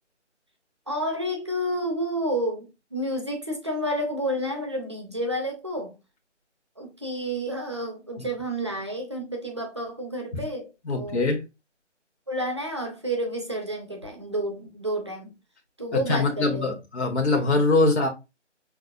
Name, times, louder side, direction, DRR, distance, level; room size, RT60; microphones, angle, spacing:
voice 1, 0.9-5.9 6.8-11.3 12.3-15.3 15.8-16.7, equal, 25° right, 0.6 m, -30 dB
voice 2, 10.8-11.4 15.9-18.1, left 3 dB, 65° left, 1.0 m, -23 dB
5.7 x 2.0 x 2.5 m
figure-of-eight pair, 160°, 37 cm